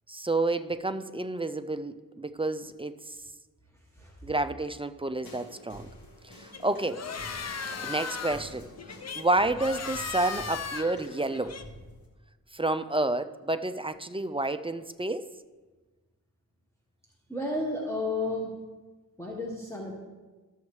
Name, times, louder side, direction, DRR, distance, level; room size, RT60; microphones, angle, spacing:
voice 1, 0.1-3.2 4.2-5.9 6.2-7.1 7.8-8.7 9.2-11.6 12.5-15.3, right 2 dB, 15° right, 11 dB, 0.3 m, -30 dB
sound 1, 5.2-12.1, equal, 80° left, 1.8 m, -49 dB
sound 2, 6.5-11.6, left 5 dB, 45° left, 0.6 m, -37 dB
voice 2, 17.3-18.5 19.2-19.9, left 2 dB, 10° left, -3 dB, 1.3 m, -32 dB
13.0 x 7.1 x 3.2 m, 1.3 s
wide cardioid pair, 70°, 35 cm